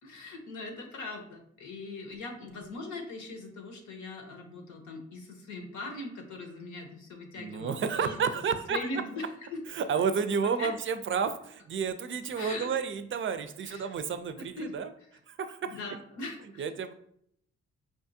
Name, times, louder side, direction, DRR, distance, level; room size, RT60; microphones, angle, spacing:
voice 1, 0.0-8.4 8.7-9.6 10.4-10.7 12.4-12.7 13.6-13.9 14.6-14.7 15.6-16.7, left 2 dB, 80° left, 4 dB, 0.8 m, -40 dB
voice 2, 7.4-8.8 9.7-14.9 15.3-15.8 16.6-16.9, right 6 dB, 45° right, 10 dB, 0.4 m, -31 dB
4.9 x 2.4 x 2.7 m, 0.70 s
supercardioid pair, 60°, 29 cm